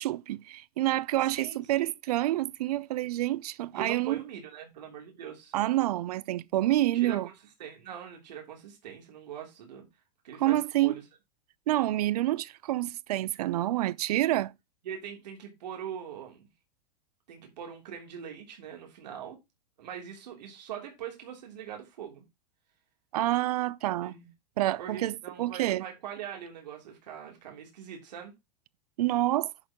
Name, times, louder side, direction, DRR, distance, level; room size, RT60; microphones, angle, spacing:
voice 1, 0.0-4.2 5.5-7.3 10.4-11.0 11.7-14.5 23.1-24.1 24.6-25.8 29.0-29.5, right 15 dB, 65° right, 0.5 m, -28 dB
voice 2, 1.2-1.9 3.7-5.5 6.9-7.3 7.6-9.8 10.2-11.0 14.8-16.5 17.3-19.4 19.8-22.2 24.0-24.3 24.8-28.3, right 9 dB, 85° right, 3.3 m, -42 dB
10.5 x 4.5 x 3.6 m
supercardioid pair, 175°, 21 cm